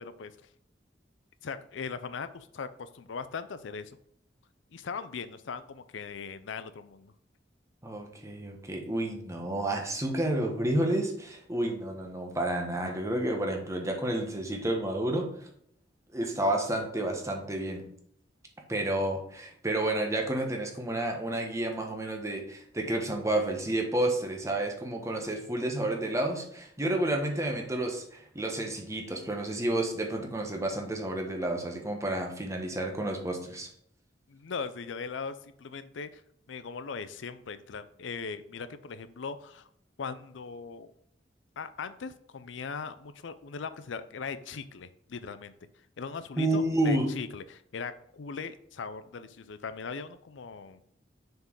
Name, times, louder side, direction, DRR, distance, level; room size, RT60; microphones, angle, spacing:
voice 1, 1.4-3.9 4.7-7.1 34.3-36.2 36.5-39.7 40.0-40.9 41.6-45.5 46.0-50.8, left 5 dB, 80° left, 13 dB, 0.5 m, -39 dB
voice 2, 7.8-15.5 16.1-17.9 18.7-33.7 46.4-47.1, right 1 dB, 15° right, 2 dB, 1.2 m, -30 dB
6.6 x 4.6 x 4.7 m, 0.69 s
head